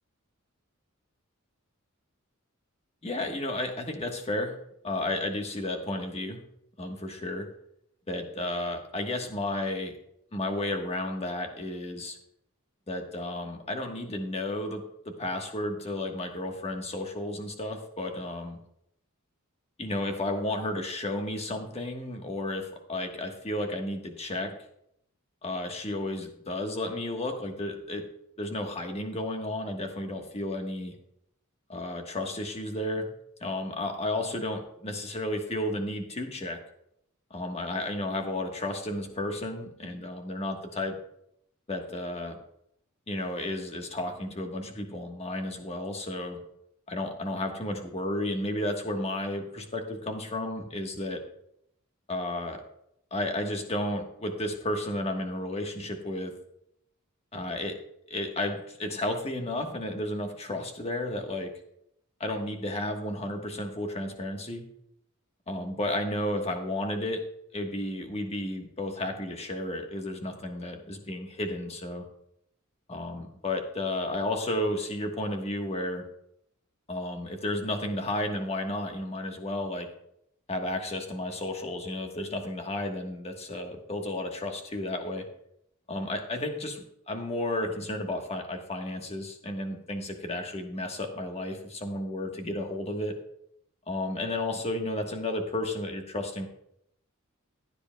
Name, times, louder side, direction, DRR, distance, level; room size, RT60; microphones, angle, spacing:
voice 1, 3.0-4.5 4.8-6.4 6.8-7.5 8.1-9.9 10.3-12.2 12.9-14.8 15.2-18.6 19.8-24.5 25.4-28.1 28.4-30.9 31.7-33.1 33.4-36.6 37.3-40.9 41.7-42.4 43.1-46.4 46.9-51.2 52.1-52.6 53.1-56.3 57.3-57.8 58.1-61.5 62.2-64.6 65.5-67.2 67.5-72.1 72.9-76.1 76.9-79.9 80.5-85.2 85.9-93.1 93.9-96.5, left 1 dB, 30° left, 4 dB, 1.2 m, -32 dB
15.5 x 9.8 x 2.2 m, 0.75 s
head